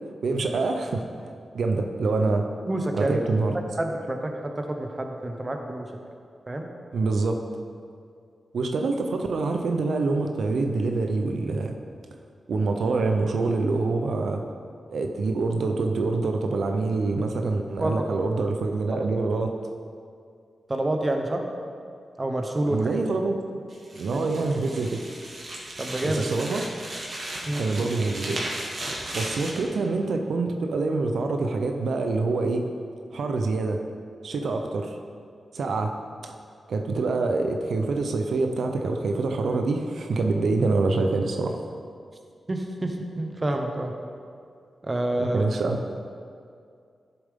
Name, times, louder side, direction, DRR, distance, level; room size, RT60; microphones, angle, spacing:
voice 1, 0.2-1.1 1.5-2.4 2.9-3.6 6.9-7.4 8.5-11.7 12.5-14.4 14.9-19.5 22.7-23.4 23.9-25.0 26.0-26.6 27.6-28.4 29.1-32.7 33.1-33.8 34.2-35.0 35.5-35.9 36.2-36.3 36.7-41.6 45.2-46.0, right 3 dB, 80° right, 4 dB, 0.6 m, -25 dB
voice 2, 2.7-3.2 3.8-5.9 6.5-6.7 17.8-18.1 18.9-19.1 20.7-21.4 22.2-23.0 24.1-24.3 25.8-26.3 27.5-27.6 42.5-43.9 44.8-45.4, right 1 dB, 25° right, 3 dB, 0.9 m, -28 dB
sound 1, 23.7-29.6, right 1 dB, 50° right, 1.9 m, -36 dB
12.0 x 7.0 x 3.6 m, 2.3 s
wide cardioid pair, 110°, 0 cm